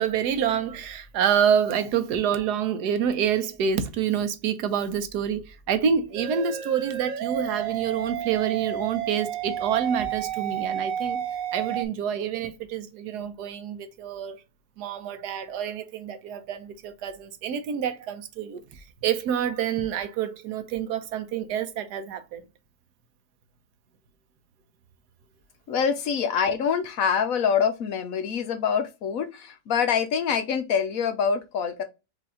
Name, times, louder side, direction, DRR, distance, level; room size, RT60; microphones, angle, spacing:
voice 1, 0.0-11.2 11.5-14.4 14.8-18.6 19.0-22.4, right 8 dB, 80° right, 1.3 m, -27 dB
sound 1, 6.2-11.9, right 9 dB, 60° right, 1.0 m, -31 dB
voice 2, 25.7-31.8, left 7 dB, 65° left, 1.0 m, -25 dB
5.1 x 2.8 x 3.7 m
omnidirectional pair, 1.7 m